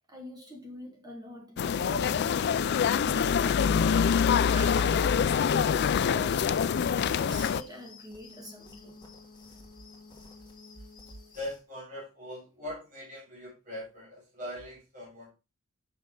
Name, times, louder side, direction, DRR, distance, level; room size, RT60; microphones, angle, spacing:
voice 1, 0.1-4.2 4.5-9.0, equal, 20° right, 1.8 m, -44 dB
sound 1, 1.6-7.6, left 7 dB, 55° left, 0.4 m, -25 dB
sound 2, 1.7-11.6, left 3 dB, 20° left, 2.1 m, -52 dB
voice 2, 11.3-15.3, left 1 dB, 40° right, 3.4 m, -41 dB
6.5 x 6.3 x 3.8 m
head